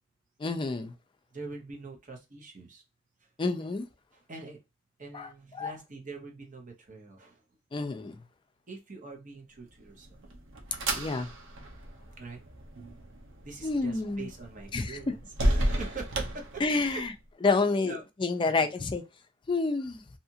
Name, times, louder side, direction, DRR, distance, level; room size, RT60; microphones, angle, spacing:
voice 1, 0.4-0.9 3.4-3.9 5.1-5.7 7.7-8.2 10.9-11.3 13.6-14.3 14.7-15.0 16.6-17.1 17.4-19.0 19.5-20.0, left 3 dB, 25° left, 0.4 m, -29 dB
voice 2, 1.3-2.8 3.2-3.3 4.1-4.6 5.0-7.4 8.7-10.2 12.2-12.4 13.4-17.0 17.5-18.0 18.4-18.7, right 4 dB, 45° right, 0.8 m, -44 dB
sound 1, 9.8-17.1, right 1 dB, 85° right, 0.7 m, -33 dB
2.7 x 2.4 x 2.7 m
head